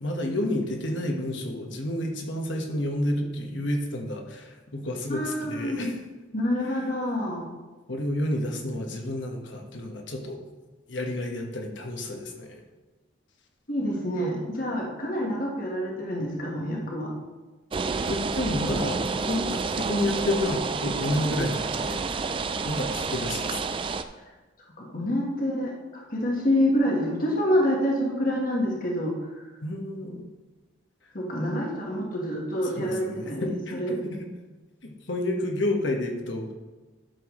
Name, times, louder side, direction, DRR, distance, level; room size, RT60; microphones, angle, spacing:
voice 1, 0.0-5.9 7.9-10.4 10.9-12.6 18.1-22.3 22.6-23.6 29.6-30.2 32.8-34.2 34.8-36.5, left 1 dB, 65° left, 2 dB, 1.3 m, -30 dB
voice 2, 5.1-5.9 6.3-7.5 13.7-17.1 24.8-29.5 31.1-34.0, equal, 45° left, -2 dB, 1.5 m, -27 dB
sound 1, 17.7-24.0, right 4 dB, 25° right, 0.3 m, -29 dB
12.0 x 6.9 x 3.1 m, 1.2 s
head